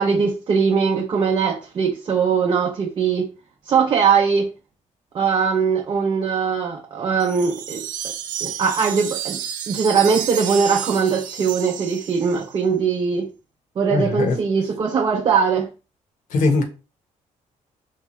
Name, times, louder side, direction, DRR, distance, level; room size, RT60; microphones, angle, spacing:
voice 1, 0.0-3.3 3.7-4.5 5.1-8.1 8.4-9.4 9.7-13.3 13.8-15.7, right 6 dB, 35° right, 0.5 m, -20 dB
Wind chime, 7.2-12.6, right 9 dB, 85° right, 0.7 m, -31 dB
voice 2, 13.8-14.4 16.3-16.6, left 3 dB, 75° left, 1.1 m, -20 dB
4.5 x 3.5 x 3.1 m
cardioid pair, 175°, 13 cm